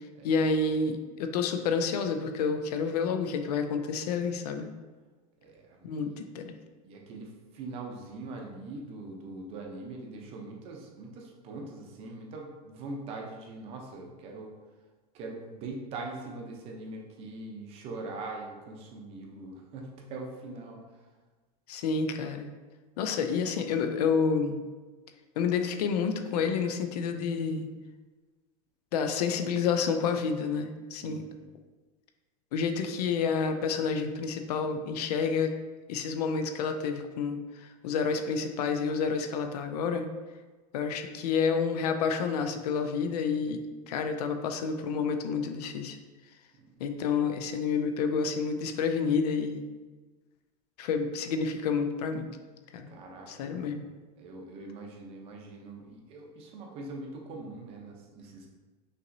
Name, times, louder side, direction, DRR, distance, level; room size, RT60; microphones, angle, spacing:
voice 1, 0.2-4.7 5.8-6.5 21.7-22.5 23.0-24.7 25.4-27.7 28.9-31.2 32.5-35.5 35.9-40.1 40.7-46.0 46.8-49.7 50.8-52.3 52.7-52.9 53.3-53.9, left 5 dB, 80° left, 7 dB, 0.5 m, -29 dB
voice 2, 5.4-6.2 6.8-14.5 15.1-21.0 31.0-31.5 46.6-46.8 52.9-53.7 54.2-58.5, right 2 dB, 30° right, 1 dB, 0.6 m, -42 dB
5.7 x 3.0 x 2.6 m, 1.3 s
supercardioid pair, 165°, 20 cm